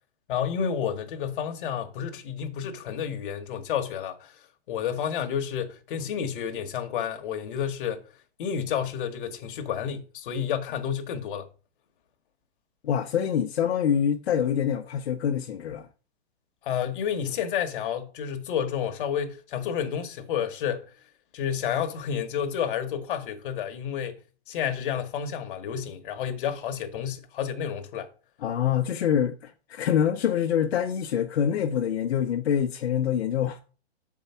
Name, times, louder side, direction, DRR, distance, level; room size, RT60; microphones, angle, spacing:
voice 1, 0.3-4.3 4.7-8.0 8.4-11.5 16.6-20.9 21.3-28.1 28.7-28.8, left 8 dB, 50° left, 1.3 m, -30 dB
voice 2, 12.8-15.9 28.4-33.6, left 9 dB, 70° left, 0.9 m, -25 dB
7.1 x 4.7 x 5.6 m
hypercardioid pair, 155°, 33 cm